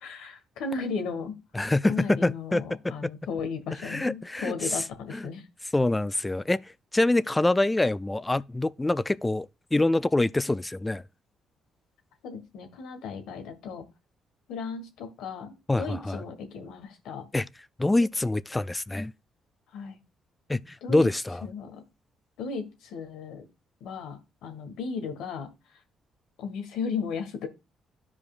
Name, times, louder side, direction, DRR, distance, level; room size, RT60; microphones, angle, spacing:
voice 1, 0.0-5.4 12.2-13.8 14.5-17.2 19.7-20.0 20.8-21.1 21.4-21.8 22.4-23.4 23.8-25.5 26.4-27.5, left 5 dB, 90° left, 1.5 m, -35 dB
voice 2, 1.5-3.1 3.8-4.8 5.1-5.2 5.7-6.6 6.9-11.0 15.7-16.2 17.3-17.5 17.8-19.1 20.5-21.4, left 2 dB, 15° left, 0.3 m, -25 dB
12.5 x 4.9 x 2.5 m
cardioid pair, 90°, 0 cm